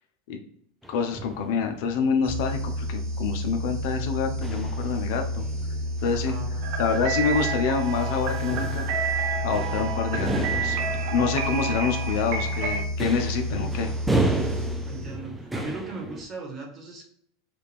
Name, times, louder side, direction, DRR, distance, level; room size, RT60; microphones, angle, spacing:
sound 1, 0.8-16.2, right 2 dB, 5° right, 0.4 m, -34 dB
voice 1, 0.9-5.4 6.0-6.4 6.8-8.9 9.4-10.8 11.0-13.9, left 6 dB, 65° left, 5 dB, 0.7 m, -27 dB
sound 2, 2.2-15.4, equal, 80° right, 1.7 m, -31 dB
voice 2, 6.1-6.7 14.8-17.0, right 3 dB, 25° right, 1 dB, 1.2 m, -38 dB
sound 3, 6.6-12.8, right 6 dB, 50° right, 0.6 m, -30 dB
4.9 x 2.5 x 3.4 m, 0.66 s
supercardioid pair, 145°, 0 cm